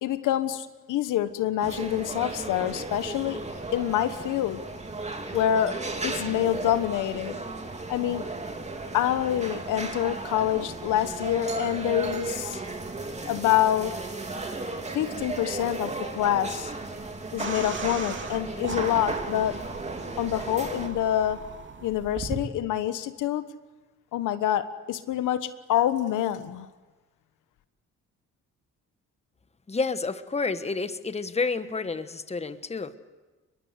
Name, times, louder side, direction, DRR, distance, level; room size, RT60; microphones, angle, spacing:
voice 1, 0.0-3.4 3.7-4.6 5.3-5.8 6.0-7.3 7.9-8.3 8.9-12.6 13.2-14.0 14.9-16.7 17.3-19.6 20.2-21.4 21.8-23.4 24.1-26.7, left 11 dB, 85° left, 11 dB, 1.3 m, -26 dB
sound 1, 1.6-20.9, right 3 dB, 20° right, 2.9 m, -35 dB
sound 2, 17.4-22.4, right 4 dB, 40° right, 2.8 m, -38 dB
voice 2, 29.7-33.0, left 4 dB, 20° left, 11 dB, 1.3 m, -29 dB
23.0 x 22.0 x 8.1 m, 1.2 s
cardioid pair, 90°, 30 cm